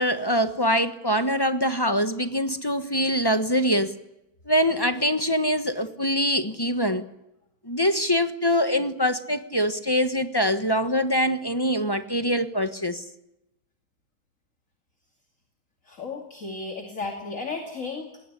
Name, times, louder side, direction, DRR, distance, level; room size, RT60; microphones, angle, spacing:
voice 1, 0.0-3.9 4.5-7.0 7.6-13.0, equal, 15° left, 9 dB, 0.9 m, -24 dB
voice 2, 15.8-18.2, left 4 dB, 40° left, 4 dB, 2.8 m, -34 dB
21.0 x 18.0 x 10.0 m, 0.89 s
omnidirectional pair, 2.3 m